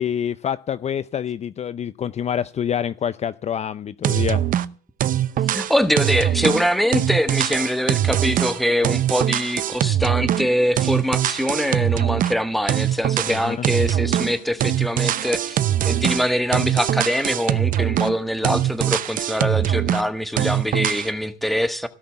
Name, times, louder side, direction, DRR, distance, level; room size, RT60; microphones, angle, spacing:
voice 1, 0.0-4.4 13.2-13.7, left 9 dB, 40° left, 0.6 m, -26 dB
sound 1, 4.0-4.7 5.0-10.5 10.8-12.4 12.7-14.4 14.6-18.2 18.4-20.1 20.4-21.1, right 11 dB, 55° right, 0.8 m, -22 dB
voice 2, 5.5-21.9, equal, ahead, 1.6 m, -23 dB
17.5 x 5.8 x 9.7 m
cardioid pair, 110°, 17 cm